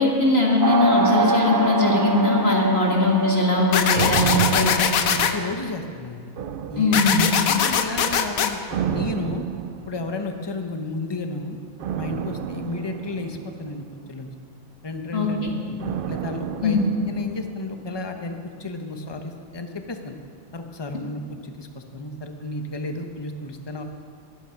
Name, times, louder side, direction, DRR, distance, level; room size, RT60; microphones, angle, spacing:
voice 1, 0.0-4.8 6.8-7.2 15.1-15.5 16.6-16.8, left 2 dB, 45° left, -2 dB, 2.3 m, -20 dB
sound 1, 0.6-5.6, right 2 dB, 25° right, 0.5 m, -25 dB
sound 2, 3.7-5.3 6.9-8.5, left 7 dB, 80° left, 1.3 m, -21 dB
voice 2, 3.7-4.0 5.1-6.3 6.7-7.0 7.5-9.4 9.9-11.6 12.0-14.3 14.8-15.8 16.1-20.1 20.5-23.8, left 3 dB, 20° left, 5 dB, 0.9 m, -33 dB
sound 3, 3.9-5.9 6.4-7.6 8.7-10.4 11.8-14.2 15.8-18.0 18.3-18.4, right 9 dB, 70° right, 0.5 m, -31 dB
21.5 x 9.3 x 5.8 m, 2.2 s
omnidirectional pair, 1.5 m